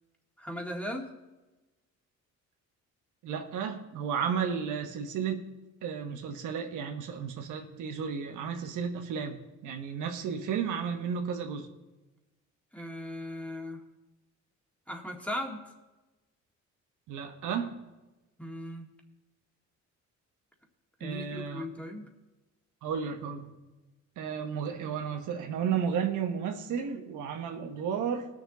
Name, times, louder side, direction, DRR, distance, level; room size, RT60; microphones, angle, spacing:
voice 1, 0.4-1.1 12.7-13.8 14.9-15.7 18.4-18.8 21.0-22.1, left 1 dB, 5° left, 2 dB, 2.1 m, -37 dB
voice 2, 3.2-5.4 5.8-9.4 9.6-11.7 17.1-17.7 21.0-21.6 22.8-23.5 24.2-28.3, right 7 dB, 85° right, 4 dB, 1.3 m, -33 dB
19.0 x 6.9 x 4.0 m, 1.1 s
cardioid pair, 90°, 30 cm